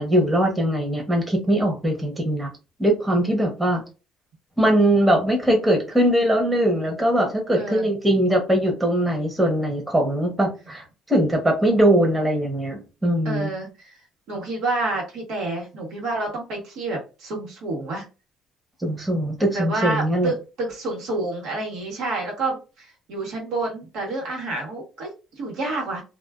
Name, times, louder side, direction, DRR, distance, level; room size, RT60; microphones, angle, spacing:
voice 1, 0.0-2.5 2.8-3.8 4.6-13.5 18.8-20.3, right 1 dB, 10° right, 1 dB, 0.8 m, -21 dB
voice 2, 7.5-7.9 13.2-13.9 14.3-18.0 19.5-26.0, right 2 dB, 80° right, -1 dB, 1.1 m, -29 dB
2.4 x 2.3 x 2.3 m, 0.31 s
cardioid pair, 100°, 0 cm